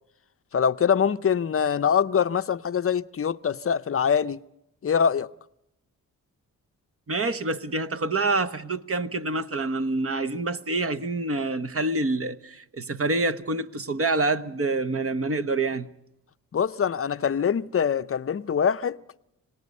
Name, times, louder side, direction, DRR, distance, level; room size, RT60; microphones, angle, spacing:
voice 1, 0.5-4.4 4.8-5.3 16.5-19.0, left 7 dB, 40° left, 0.7 m, -24 dB
voice 2, 7.1-15.9, right 2 dB, 40° right, 1.1 m, -27 dB
27.0 x 18.5 x 5.4 m
cardioid pair, 65°, 37 cm